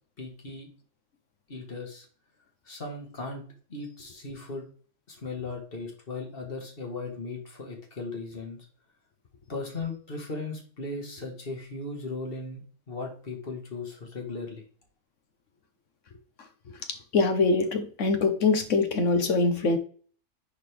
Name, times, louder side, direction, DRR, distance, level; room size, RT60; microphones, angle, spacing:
voice 1, 0.2-0.7 1.5-2.1 2.7-3.4 3.7-4.7 5.1-8.6 9.5-14.6, left 3 dB, 40° left, 1 dB, 1.9 m, -37 dB
voice 2, 16.7-19.8, left 3 dB, 60° left, 7 dB, 1.4 m, -24 dB
10.0 x 4.1 x 3.4 m, 0.43 s
omnidirectional pair, 1.5 m